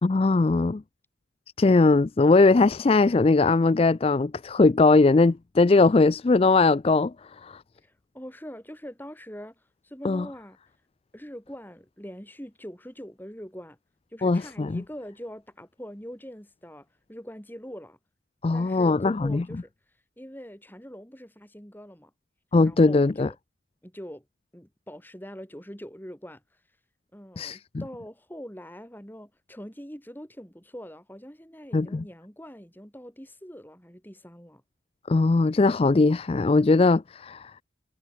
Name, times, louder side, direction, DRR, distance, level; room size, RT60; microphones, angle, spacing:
voice 1, 0.0-0.8 1.6-7.1 7.4-7.6 10.0-10.3 14.2-14.8 18.4-19.4 22.5-23.3 27.4-27.6 31.7-32.0 35.1-37.5, left 3 dB, 30° left, 0.4 m, -20 dB
voice 2, 7.8-9.5 9.8-10.6 11.1-13.8 14.1-18.0 18.5-19.7 20.2-22.1 22.6-23.4 23.8-24.2 24.5-26.4 27.1-34.6, equal, 10° left, 5.1 m, -43 dB
head